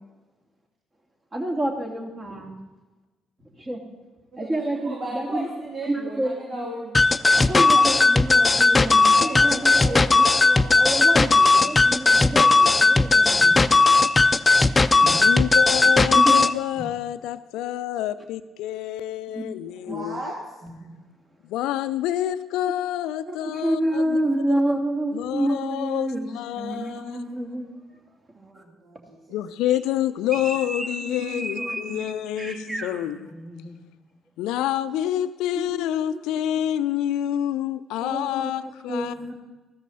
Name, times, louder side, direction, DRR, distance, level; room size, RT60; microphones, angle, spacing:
voice 1, 1.3-2.5 3.5-3.8 4.4-5.5 5.8-6.7 7.3-13.7 14.2-14.4 15.0-15.3 16.1-16.5 19.3-19.4 19.9-20.0 20.8-21.1 23.3-26.3 26.5-27.8 28.5-28.6 30.3-32.0 32.4-33.8 35.5-35.7 36.1-36.2 38.0-39.3, right 1 dB, 35° right, 1 dB, 2.8 m, -29 dB
voice 2, 4.3-7.0 7.7-7.9 9.1-10.3 19.7-20.3 28.3-29.4, right 1 dB, 60° right, -4 dB, 2.9 m, -36 dB
sound 1, 6.9-16.5, left 3 dB, 25° left, 0.6 m, -17 dB
voice 3, 15.2-20.2 21.4-24.2 25.1-26.1 26.3-27.2 29.3-33.3 33.5-33.9 34.4-39.1, left 12 dB, 75° left, 14 dB, 0.5 m, -28 dB
14.0 x 13.5 x 4.1 m, 1.2 s
hypercardioid pair, 45°, 0 cm